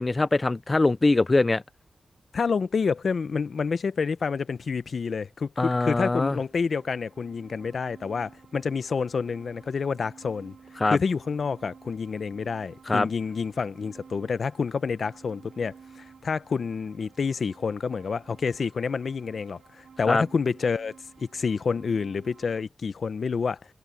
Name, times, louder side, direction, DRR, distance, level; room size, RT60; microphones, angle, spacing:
voice 1, 0.0-1.6 5.6-6.4 10.8-11.0 12.9-13.1 20.1-20.2, left 2 dB, 30° left, 0.4 m, -22 dB
voice 2, 2.3-10.5 10.9-23.6, left 5 dB, 65° left, 0.7 m, -28 dB
sound 1, 6.3-22.6, right 6 dB, 90° right, 3.0 m, -53 dB
wide cardioid pair, 115°, 0 cm